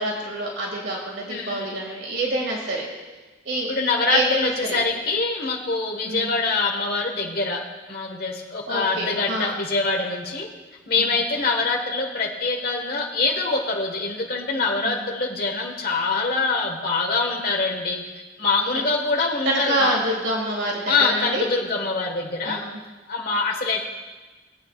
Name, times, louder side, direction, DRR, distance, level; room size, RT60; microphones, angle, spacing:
voice 1, 0.0-2.8 3.5-3.7 4.1-4.8 6.0-6.3 8.7-9.6 11.0-11.2 14.8-15.1 18.7-18.8 19.4-21.5 22.4-22.8, right 1 dB, 80° right, -2 dB, 2.3 m, -27 dB
voice 2, 1.3-1.8 3.6-10.5 10.9-18.0 18.4-19.9 20.9-22.6 23.1-23.9, left 3 dB, 55° left, 1 dB, 1.5 m, -24 dB
21.0 x 8.3 x 2.4 m, 1.2 s
head